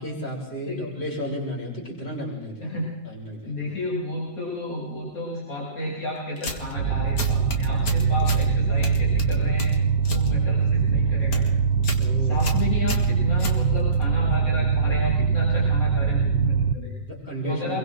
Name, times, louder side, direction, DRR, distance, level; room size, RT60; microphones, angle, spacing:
voice 1, 0.0-2.7 3.0-3.7 12.0-12.5 17.0-17.8, equal, 35° left, -4 dB, 6.0 m, -33 dB
voice 2, 3.4-9.7 10.1-11.4 12.2-16.9 17.4-17.8, left 1 dB, 80° left, -7 dB, 8.6 m, -31 dB
sound 1, 6.4-6.8 7.2-8.5 8.8-10.3 10.6-10.9 11.2-11.5 11.8-12.1 12.4-14.0, left 3 dB, 60° left, 2.9 m, -33 dB
sound 2, 6.8-16.7, right 6 dB, 70° right, 1.5 m, -22 dB
29.5 x 22.5 x 3.9 m, 1.1 s
omnidirectional pair, 2.0 m